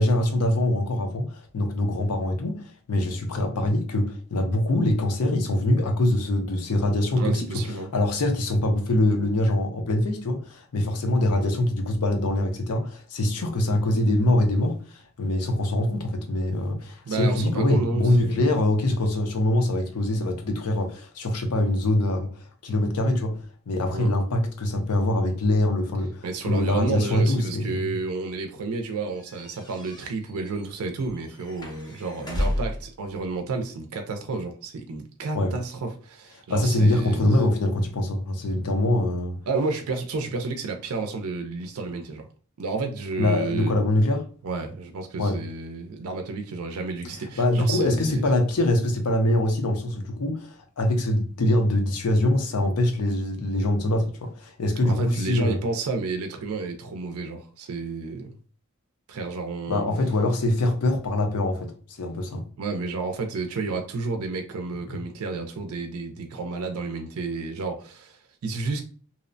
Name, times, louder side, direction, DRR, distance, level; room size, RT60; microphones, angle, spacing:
voice 1, 0.0-22.3 22.6-23.4 23.7-27.9 35.3-35.6 36.5-39.4 43.2-44.3 45.2-45.4 47.4-55.6 59.7-62.4 64.9-65.0, left 1 dB, 90° left, 0.6 m, -24 dB
voice 2, 7.2-7.9 17.1-18.5 23.9-24.1 26.2-37.3 39.5-42.3 42.6-43.8 44.4-48.2 54.8-58.3 59.1-59.8 62.6-68.8, right 3 dB, 75° right, 0.4 m, -31 dB
sound 1, 29.2-32.9, left 1 dB, 20° left, 0.5 m, -32 dB
2.7 x 2.0 x 2.5 m
head